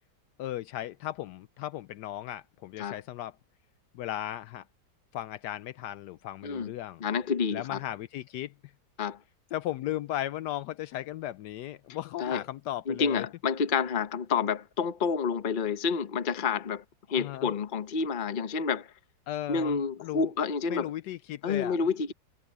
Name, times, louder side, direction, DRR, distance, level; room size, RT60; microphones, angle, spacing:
voice 1, 0.4-3.4 3.9-4.7 5.1-7.0 7.5-8.7 9.5-13.3 17.1-17.5 19.3-20.3 20.7-21.8, left 13 dB, 75° left, 1.1 m, -36 dB
voice 2, 7.0-7.8 9.0-9.2 12.2-12.4 12.9-18.9 19.5-20.9 21.4-22.1, left 5 dB, 35° left, 0.9 m, -29 dB
omnidirectional pair, 1.9 m